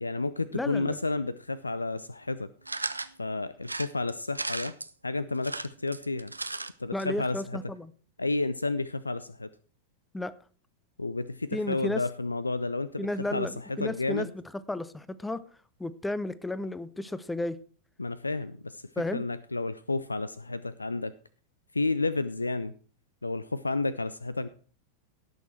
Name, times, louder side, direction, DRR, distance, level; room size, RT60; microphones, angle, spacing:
voice 1, 0.0-2.5 3.2-4.8 5.0-6.3 6.8-7.6 8.2-9.5 11.0-14.3 18.0-21.1 21.7-22.7 23.2-24.5, left 3 dB, 80° left, 0.4 m, -31 dB
voice 2, 0.5-1.0 6.9-7.9 10.1-10.3 11.5-12.0 13.0-14.3 14.5-15.4 15.8-17.6 19.0-19.2, left 1 dB, 5° left, 0.7 m, -33 dB
sound 1, 2.7-3.1 3.6-4.9 5.4-6.7 7.0-7.1 7.3-7.4, right 2 dB, 85° right, 0.5 m, -35 dB
17.5 x 6.3 x 4.4 m
figure-of-eight pair, 90°, 0 cm